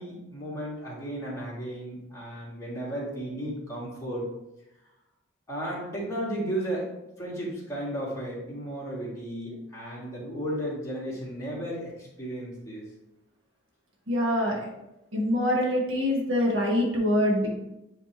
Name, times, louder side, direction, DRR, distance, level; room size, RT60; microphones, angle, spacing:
voice 1, 0.0-4.3 5.5-6.9 7.2-12.8, right 1 dB, 15° left, -7 dB, 1.9 m, -34 dB
voice 2, 14.1-14.6 15.1-17.5, left 1 dB, 75° right, -2 dB, 1.6 m, -24 dB
9.2 x 3.4 x 3.0 m, 0.91 s
head